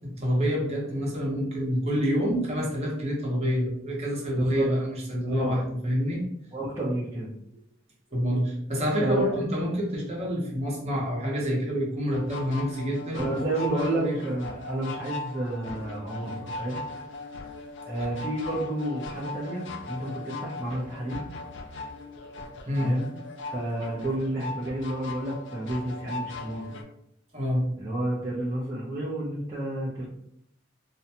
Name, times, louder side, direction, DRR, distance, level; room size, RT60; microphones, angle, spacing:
voice 1, 0.0-6.2 8.1-13.3 13.7-14.1 16.2-16.4 22.1-22.2 22.7-22.9 27.3-27.7, equal, 35° right, -3 dB, 0.8 m, -27 dB
voice 2, 6.5-7.3 9.0-9.5 13.1-16.8 17.8-21.2 22.8-23.1 23.5-26.7 27.8-30.1, right 1 dB, 15° right, -9 dB, 0.5 m, -31 dB
sound 1, 12.1-26.8, left 3 dB, 65° left, 0.4 m, -39 dB
2.5 x 2.2 x 2.7 m, 0.73 s
head